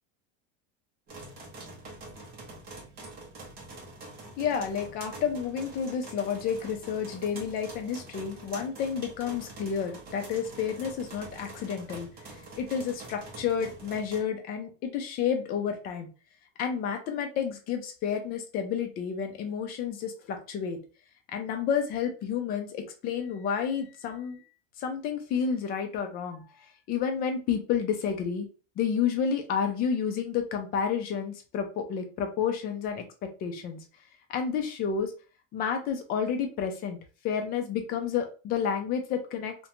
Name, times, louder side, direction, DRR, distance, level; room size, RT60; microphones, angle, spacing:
sound 1, 1.1-14.2, right 2 dB, 25° right, 0.6 m, -45 dB
voice 1, 4.4-12.3 12.6-16.1 16.6-20.8 21.3-24.4 24.8-28.5 28.8-33.0 33.4-33.8 34.3-35.1 35.5-37.0 37.2-39.5, left 7 dB, 25° left, 4 dB, 0.4 m, -30 dB
2.4 x 2.2 x 2.8 m, 0.35 s
supercardioid pair, 160°, 35 cm